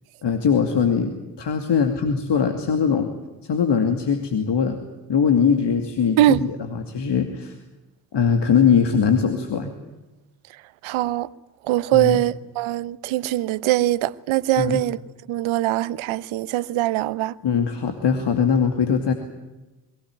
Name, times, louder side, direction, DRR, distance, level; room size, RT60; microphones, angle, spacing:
voice 1, 0.2-1.1 1.4-3.1 3.5-4.8 5.1-7.5 8.1-9.7 11.9-12.2 14.6-14.8 17.4-19.1, left 6 dB, 55° left, 2.6 m, -21 dB
voice 2, 10.8-11.3 11.6-15.0 15.3-17.3, right 15 dB, 70° right, 0.9 m, -22 dB
22.5 x 17.5 x 9.8 m
hypercardioid pair, 40°, 50 cm